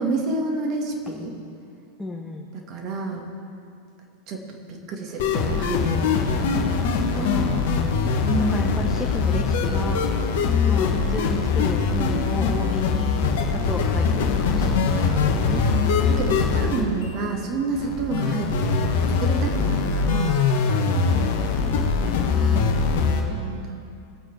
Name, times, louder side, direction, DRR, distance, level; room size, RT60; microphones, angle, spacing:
voice 1, 0.0-1.3 2.5-3.3 4.3-4.4 4.7-7.4 8.3-8.8 11.2-11.3 15.2-15.4 16.1-20.4 22.4-23.9, right 3 dB, 35° right, 1 dB, 2.4 m, -30 dB
voice 2, 2.0-2.5 7.1-7.9 8.5-10.0 10.7-13.1 13.7-15.0 15.2-15.6 16.7-17.3 20.8-21.4, left 2 dB, 5° left, -2 dB, 1.3 m, -32 dB
sound 1, 5.2-23.2, left 5 dB, 55° left, 1.7 m, -22 dB
23.5 x 8.7 x 4.7 m, 2.5 s
figure-of-eight pair, 90°, 0 cm